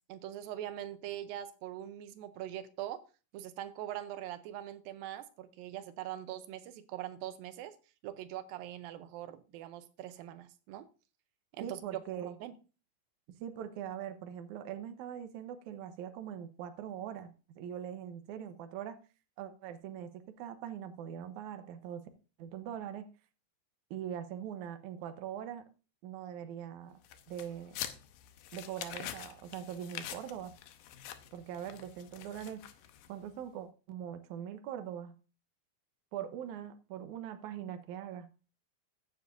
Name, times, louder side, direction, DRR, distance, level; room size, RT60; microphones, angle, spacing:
voice 1, 0.1-3.0 3.3-7.8 8.0-10.9 11.5-12.5, right 12 dB, 90° right, 2.5 m, -42 dB
voice 2, 11.6-12.4 13.4-19.0 19.4-22.0 22.4-23.1 23.9-25.6 26.0-27.0 27.3-27.8 28.5-30.5 31.3-32.6 33.1-35.1 36.1-38.3, right 9 dB, 70° right, 2.2 m, -42 dB
sound 1, 27.0-33.3, left 11 dB, 80° left, 2.5 m, -46 dB
15.0 x 9.4 x 2.6 m
omnidirectional pair, 4.0 m